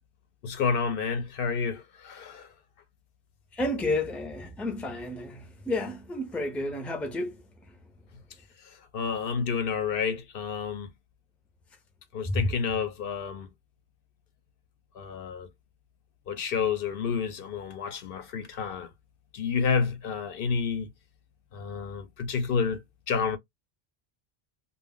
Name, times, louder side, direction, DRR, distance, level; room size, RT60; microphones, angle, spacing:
voice 1, 0.4-2.5 8.6-10.9 12.1-13.5 14.9-15.5 16.3-18.9 19.3-20.9 21.5-23.4, left 5 dB, 65° left, 0.7 m, -30 dB
voice 2, 3.5-7.4 12.2-12.4, left 2 dB, ahead, 0.5 m, -31 dB
2.2 x 2.0 x 3.5 m
omnidirectional pair, 1.0 m